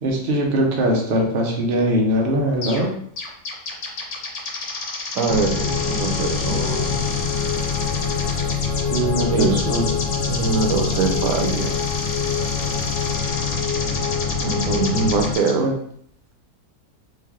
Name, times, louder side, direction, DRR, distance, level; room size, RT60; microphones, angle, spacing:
voice 1, 0.0-2.9 8.9-9.9 15.6-15.7, right 1 dB, 45° right, -1 dB, 0.8 m, -21 dB
sound 1, 2.6-2.9 3.2-15.5, left 3 dB, 85° left, 1.5 m, -30 dB
voice 2, 5.1-7.1 9.3-9.6 10.3-11.8 14.4-15.7, right 4 dB, 75° right, 3 dB, 1.3 m, -23 dB
sound 2, 5.3-15.3, left 6 dB, 60° left, 0.9 m, -25 dB
3.3 x 3.2 x 3.6 m, 0.64 s
omnidirectional pair, 1.8 m